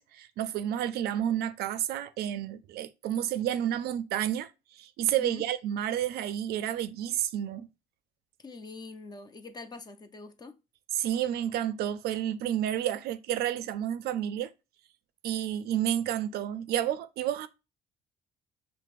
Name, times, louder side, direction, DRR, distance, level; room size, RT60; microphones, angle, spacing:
voice 1, 0.0-7.7 10.9-14.5 15.2-17.5, right 11 dB, 70° right, 0.4 m, -30 dB
voice 2, 8.4-10.6, left 3 dB, 25° left, 0.4 m, -44 dB
5.8 x 2.0 x 2.4 m
cardioid pair, 110°, 17 cm